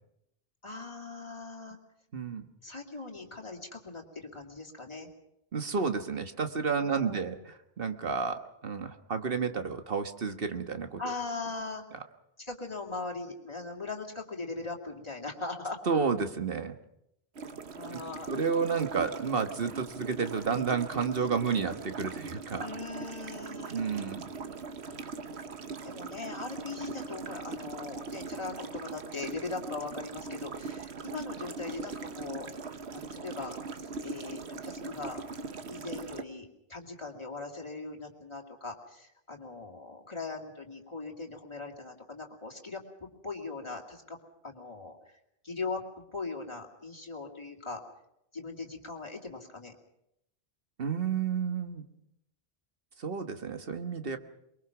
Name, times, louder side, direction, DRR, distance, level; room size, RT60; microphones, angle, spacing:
voice 1, 0.6-1.8 2.6-5.1 6.8-7.3 11.0-11.8 12.4-15.8 17.7-18.4 22.6-24.2 25.8-32.5 32.9-35.2 35.7-44.2 44.4-45.2 45.4-47.8 48.3-49.7, left 3 dB, 25° left, 0 dB, 2.7 m, -40 dB
voice 2, 2.1-2.4 5.5-11.1 15.9-16.8 17.9-18.0 18.3-22.7 23.7-24.2 50.8-51.8 53.0-54.2, right 5 dB, 60° right, 7 dB, 1.5 m, -31 dB
sound 1, 17.4-36.2, right 4 dB, 80° right, 1.4 m, -41 dB
23.5 x 22.0 x 6.0 m, 0.81 s
omnidirectional pair, 1.1 m